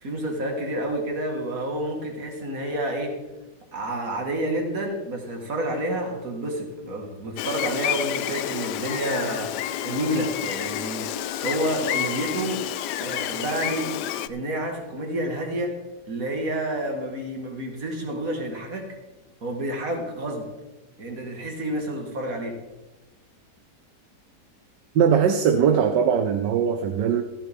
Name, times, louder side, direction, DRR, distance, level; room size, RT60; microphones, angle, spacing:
voice 1, 0.0-3.2 3.7-9.5 9.8-11.1 11.4-12.6 13.0-13.9 14.3-15.7 16.1-18.9 19.4-20.5 21.0-22.6, right 1 dB, 55° right, 2 dB, 2.3 m, -29 dB
Gull seagull, 7.4-14.3, left 12 dB, 75° left, 1.1 m, -29 dB
voice 2, 24.9-27.2, right 7 dB, 80° right, 7 dB, 1.4 m, -20 dB
14.0 x 12.5 x 3.6 m, 1.1 s
omnidirectional pair, 1.9 m